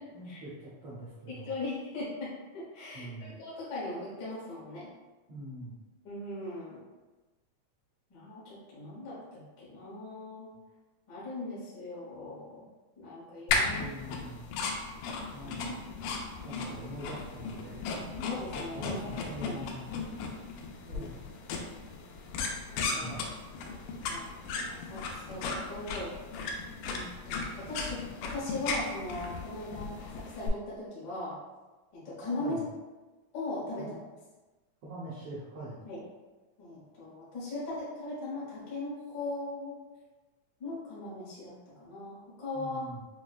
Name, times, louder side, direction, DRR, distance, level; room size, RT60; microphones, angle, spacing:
voice 1, 0.1-1.5 2.9-3.3 5.3-5.8 13.7-14.5 15.3-15.9 16.4-18.4 18.7-19.9 20.8-21.2 22.9-23.3 32.4-32.7 33.8-33.9 34.8-35.8 42.5-43.0, right 1 dB, 85° right, -8 dB, 1.2 m, -44 dB
voice 2, 1.3-4.9 6.0-6.8 8.1-10.6 11.1-12.7 13.0-13.9 15.4-15.5 18.3-19.6 20.9-21.1 21.5-21.7 22.7-23.2 24.0-24.3 24.7-26.4 26.8-31.3 31.9-32.6 33.3-33.9 35.8-36.0 36.6-39.8 40.6-42.9, left 2 dB, 65° left, -7 dB, 1.0 m, -39 dB
sound 1, 13.5-30.5, left 4 dB, 85° left, 2.0 m, -36 dB
6.3 x 2.2 x 2.4 m, 1.2 s
omnidirectional pair, 3.6 m